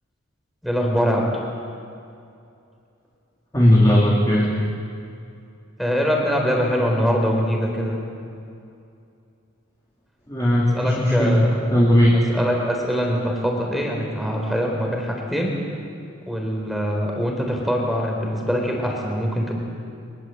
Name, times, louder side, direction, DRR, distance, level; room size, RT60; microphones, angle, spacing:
voice 1, 0.6-1.3 5.8-8.0 10.7-11.7 12.1-15.5 16.2-19.5, equal, ahead, 0 dB, 4.1 m, -23 dB
voice 2, 3.5-4.5 10.3-11.4 11.7-12.2, equal, 15° left, -6 dB, 3.3 m, -17 dB
24.0 x 23.0 x 7.8 m, 2.5 s
head